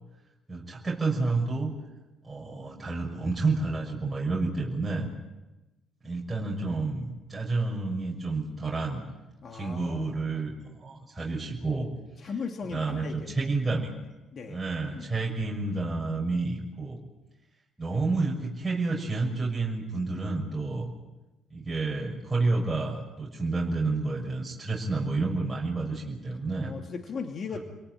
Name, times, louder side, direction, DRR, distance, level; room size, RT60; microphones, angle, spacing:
voice 1, 0.5-1.7 2.2-5.1 6.0-9.0 9.5-11.9 12.2-12.3 12.7-13.9 14.5-17.0 17.8-20.9 21.5-26.7 27.5-27.6, right 3 dB, 15° right, -2 dB, 6.4 m, -30 dB
voice 2, 9.4-10.4 12.2-13.5 14.3-14.6 14.9-15.1 26.6-27.6, left 5 dB, 50° left, 3 dB, 2.6 m, -37 dB
29.5 x 18.5 x 9.3 m, 1.1 s
cardioid pair, 90°, 0 cm